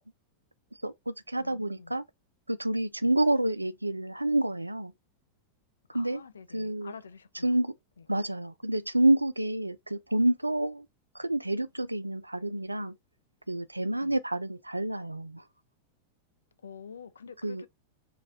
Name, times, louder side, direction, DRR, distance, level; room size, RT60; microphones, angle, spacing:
voice 1, 0.8-2.0 2.5-4.9 5.9-6.2 6.5-6.9 7.4-7.7 8.1-10.9 11.1-13.0 13.5-15.4 17.4-17.6, right 1 dB, 85° right, 0.3 m, -28 dB
voice 2, 1.4-2.0 3.0-3.1 5.9-7.6 8.0-8.1 14.0-14.2 16.6-17.7, left 6 dB, 70° left, 0.4 m, -47 dB
5.1 x 2.3 x 2.6 m
figure-of-eight pair, 90°, 0 cm